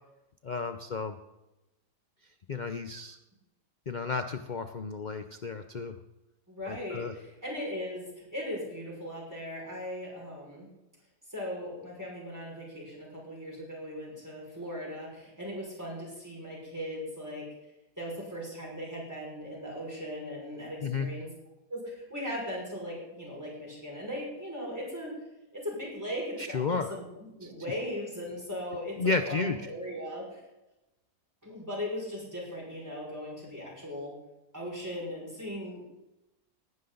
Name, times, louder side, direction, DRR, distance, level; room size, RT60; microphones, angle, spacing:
voice 1, 0.4-1.2 2.5-3.2 3.9-5.9 6.7-7.1 20.8-21.1 26.5-26.9 27.4-27.5 29.0-29.6, left 4 dB, 70° left, 8 dB, 0.4 m, -32 dB
voice 2, 6.5-10.7 11.3-17.5 18.0-21.3 21.7-25.1 25.5-27.1 27.4-30.4 31.4-34.1 34.5-35.8, equal, 10° right, -3 dB, 5.6 m, -38 dB
19.0 x 11.5 x 3.9 m, 0.97 s
omnidirectional pair, 1.7 m